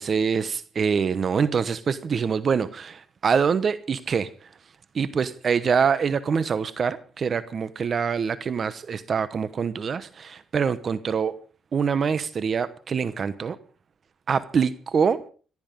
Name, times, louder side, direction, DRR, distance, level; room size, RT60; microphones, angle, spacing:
voice 1, 0.0-4.3 4.9-11.3 11.7-13.6 14.3-15.2, right 6 dB, 45° right, 1.0 m, -25 dB
18.0 x 13.5 x 5.3 m
cardioid pair, 90°, 0 cm